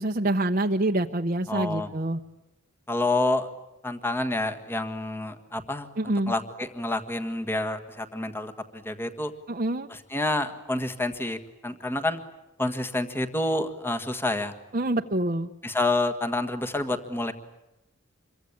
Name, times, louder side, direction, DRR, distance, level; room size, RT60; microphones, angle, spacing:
voice 1, 0.0-2.2 6.0-6.3 9.5-9.9 14.7-15.5, right 1 dB, 40° right, 2 dB, 1.0 m, -26 dB
voice 2, 1.5-1.9 2.9-3.5 3.8-5.9 6.3-9.3 9.9-12.2 12.6-14.5 15.6-17.3, left 2 dB, 10° left, 6 dB, 1.7 m, -28 dB
27.0 x 23.5 x 8.7 m, 0.96 s
head